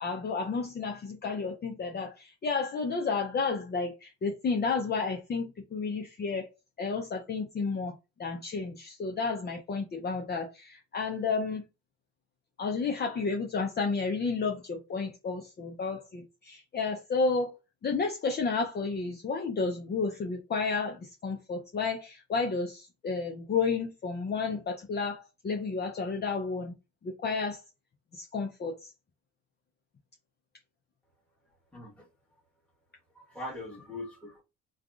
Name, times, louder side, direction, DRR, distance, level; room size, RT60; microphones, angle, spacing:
voice 1, 0.0-6.5 6.8-7.9 8.2-11.6 12.6-17.5 17.8-26.7 27.0-27.6 28.1-28.9, left 4 dB, 35° left, 0.5 m, -31 dB
voice 2, 31.7-32.1 33.1-34.4, left 2 dB, 5° left, 1.3 m, -41 dB
3.3 x 2.3 x 2.4 m
cardioid pair, 90°, 30 cm